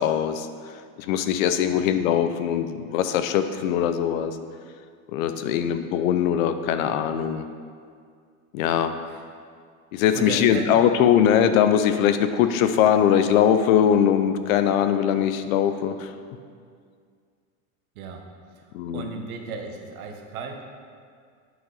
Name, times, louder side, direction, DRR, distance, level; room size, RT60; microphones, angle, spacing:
voice 1, 0.0-4.4 5.1-7.5 8.5-8.9 9.9-16.1 18.7-19.1, left 9 dB, 70° left, 10 dB, 0.7 m, -21 dB
voice 2, 10.1-10.9 17.9-18.2 18.9-20.6, right 4 dB, 90° right, 3 dB, 1.3 m, -35 dB
9.2 x 6.2 x 3.9 m, 2.1 s
supercardioid pair, 150°, 42 cm